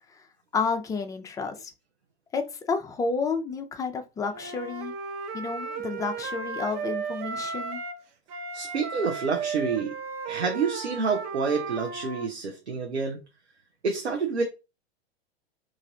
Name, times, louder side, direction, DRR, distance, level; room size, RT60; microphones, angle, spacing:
voice 1, 0.5-1.7 2.3-2.4 2.7-4.9 5.3-7.8, left 4 dB, 10° left, 0.4 m, -30 dB
Wind instrument woodwind instrument, 4.3-8.0 8.3-12.3, right 5 dB, 40° right, 0.8 m, -35 dB
voice 2, 8.5-9.9 10.3-13.2 13.8-14.4, right 4 dB, 85° right, 0.7 m, -28 dB
3.2 x 2.5 x 3.8 m
figure-of-eight pair, 95°, 33 cm